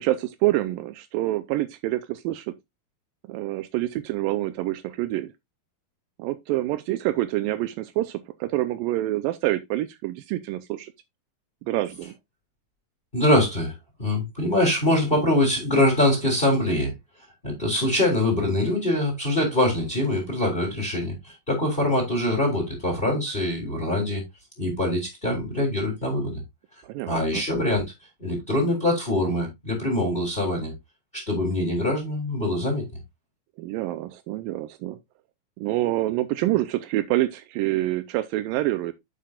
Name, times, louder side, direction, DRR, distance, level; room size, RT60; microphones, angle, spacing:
voice 1, 0.0-2.5 3.3-5.3 6.2-10.9 11.7-12.1 26.8-27.4 33.6-35.0 35.6-38.9, right 16 dB, 85° right, 2.3 m, -27 dB
voice 2, 13.1-13.7 14.0-16.9 17.4-24.2 24.6-26.4 27.1-27.8 28.2-30.7 31.1-32.8, left 1 dB, 15° left, 3.5 m, -23 dB
9.5 x 7.5 x 2.4 m
omnidirectional pair, 4.0 m